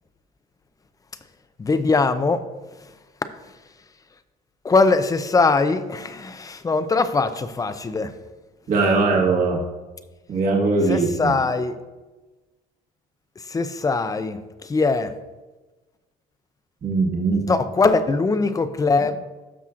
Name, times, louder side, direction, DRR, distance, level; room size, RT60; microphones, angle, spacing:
voice 1, 1.6-2.5 4.6-8.1 10.9-11.7 13.5-15.1 17.5-19.3, left 3 dB, 20° left, 11 dB, 0.5 m, -21 dB
voice 2, 8.7-9.6 10.3-11.3 16.8-17.4, right 3 dB, 50° right, -1 dB, 1.6 m, -20 dB
12.5 x 6.0 x 2.5 m, 1.2 s
cardioid pair, 110°, 17 cm